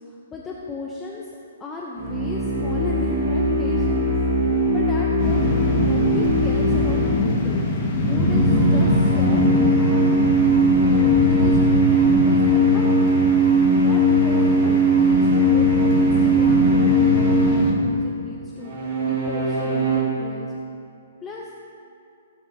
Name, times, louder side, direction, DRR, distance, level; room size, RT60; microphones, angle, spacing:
voice 1, 0.1-4.1 4.7-7.7 8.1-10.2 10.7-13.1 13.7-18.7 19.1-20.5 21.2-21.5, left 3 dB, 10° left, -3 dB, 0.5 m, -35 dB
sound 1, 1.9-7.3 8.0-17.8 18.6-20.0, right 1 dB, 40° right, 2.4 m, -19 dB
sound 2, 5.2-17.7, left 2 dB, 25° left, 1.3 m, -24 dB
16.0 x 8.7 x 2.6 m, 2.5 s
hypercardioid pair, 175°, 0 cm